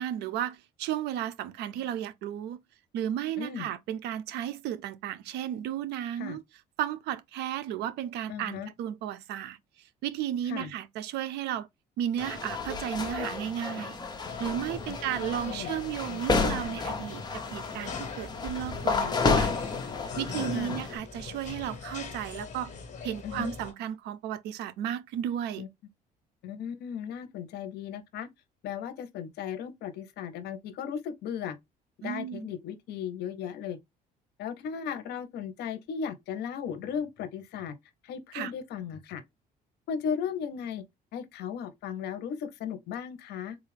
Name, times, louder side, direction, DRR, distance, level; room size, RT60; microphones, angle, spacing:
voice 1, 0.0-2.6 2.9-6.4 6.8-9.6 10.0-11.7 12.0-17.2 17.5-19.5 20.2-22.7 23.0-25.7 32.0-32.5 38.3-38.5, right 10 dB, 80° right, 0.5 m, -34 dB
voice 2, 3.4-3.7 6.2-6.4 8.3-8.7 10.5-10.7 15.5-15.7 20.5-20.8 23.2-23.5 25.6-25.7 26.4-28.3 28.6-31.6 32.0-33.8 34.4-37.7 38.0-39.2 39.9-40.8 41.1-43.6, left 7 dB, 75° left, 0.7 m, -36 dB
sound 1, 12.2-21.0, left 4 dB, 25° left, 0.9 m, -31 dB
sound 2, 14.2-23.7, left 5 dB, 45° left, 1.3 m, -41 dB
3.8 x 2.3 x 3.1 m
cardioid pair, 110°, 17 cm